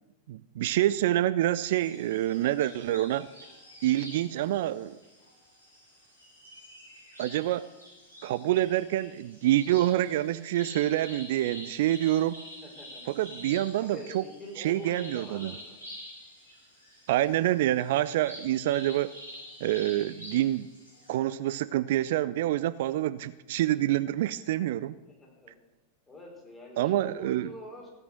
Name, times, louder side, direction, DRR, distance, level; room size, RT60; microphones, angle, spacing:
voice 1, 0.3-3.3 3.8-5.0 7.2-7.7 8.2-12.4 13.1-14.2 14.6-15.5 17.1-19.1 19.6-20.7 21.1-25.0 26.8-27.5, right 14 dB, 55° right, 17 dB, 0.4 m, -27 dB
sound 1, 1.6-21.1, equal, 85° left, 5.9 m, -48 dB
voice 2, 12.6-13.0 13.8-15.8 25.1-25.5 26.1-27.9, equal, 15° left, -2 dB, 5.4 m, -45 dB
16.0 x 9.6 x 6.5 m, 1.0 s
figure-of-eight pair, 90°, 0 cm